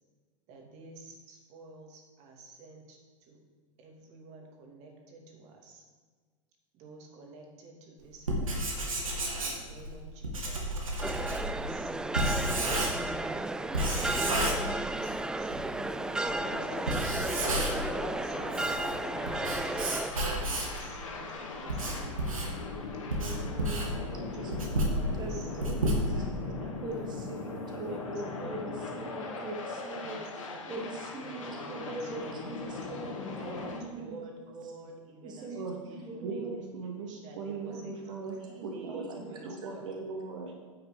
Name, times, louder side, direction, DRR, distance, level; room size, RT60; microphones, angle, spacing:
voice 1, 0.5-3.4 3.8-5.8 6.7-8.8 9.4-10.8 11.4-15.5 16.2-19.7 20.4-22.5 23.1-26.8 27.4-29.4 29.9-33.0 33.6-36.6 37.2-37.9 38.4-39.9, right 3 dB, 45° right, 1 dB, 2.5 m, -51 dB
Writing, 8.2-13.2 13.7-15.2 15.5-15.6 16.2-16.4 16.8-17.9 18.3-20.8 21.4-26.5, right 1 dB, 85° right, 2.2 m, -31 dB
sound 1, 11.0-20.1, right 2 dB, 5° right, 0.3 m, -33 dB
sound 2, 15.5-33.8, left 4 dB, 70° left, 2.2 m, -40 dB
voice 2, 22.9-26.2 26.8-34.2 35.2-36.6 37.7-39.7, right 2 dB, 25° right, 0 dB, 1.8 m, -42 dB
voice 3, 36.2-40.5, right 4 dB, 65° right, 1 dB, 1.4 m, -39 dB
9.6 x 7.7 x 5.0 m, 1.5 s
figure-of-eight pair, 95°, 17 cm